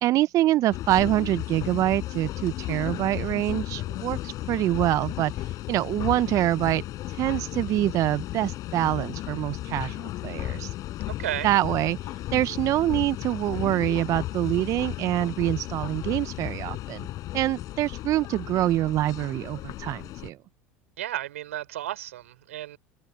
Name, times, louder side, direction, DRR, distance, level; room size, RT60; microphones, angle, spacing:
voice 1, 0.0-6.8 7.1-10.7 11.4-12.0 12.3-17.1 17.3-20.4, right 14 dB, 50° right, 0.7 m, -25 dB
sound 1, 0.7-20.3, left 15 dB, 55° left, 7.8 m, -34 dB
voice 2, 21.0-22.8, right 13 dB, 80° right, 4.7 m, -33 dB
hypercardioid pair, 75°, 7 cm